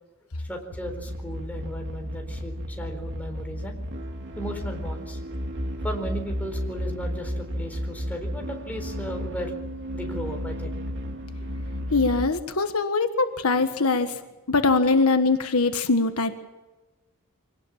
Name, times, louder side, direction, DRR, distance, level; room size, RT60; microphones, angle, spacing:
voice 1, 0.4-3.8 4.4-5.2 5.8-9.5 9.9-10.8, equal, 5° left, 2 dB, 4.3 m, -36 dB
sound 1, 0.7-12.3, equal, 55° right, 2.6 m, -33 dB
voice 2, 11.9-14.2 14.5-16.3, left 3 dB, 70° left, 7 dB, 1.5 m, -22 dB
24.5 x 19.0 x 7.4 m, 1.1 s
head